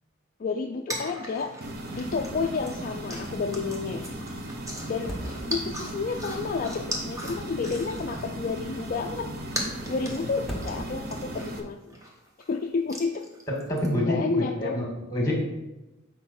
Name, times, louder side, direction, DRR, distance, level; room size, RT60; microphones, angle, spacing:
voice 1, 0.4-1.5 1.9-4.1 4.8-5.1 5.5-9.3 9.8-11.9 12.5-13.3 14.1-14.8, left 4 dB, 40° left, 3 dB, 0.3 m, -30 dB
sound 1, 0.9-8.4 8.6-12.6 12.9-13.9, equal, 15° right, 1.0 m, -39 dB
sound 2, 1.6-11.6, right 1 dB, 50° right, 0.8 m, -37 dB
sound 3, 2.1-2.6 2.9-3.0 4.8-5.9 7.6-8.5 10.3-11.3, equal, ahead, 1.2 m, -39 dB
voice 2, 13.7-15.3, left 1 dB, 15° left, -1 dB, 1.9 m, -27 dB
8.0 x 4.7 x 4.2 m, 1.0 s
head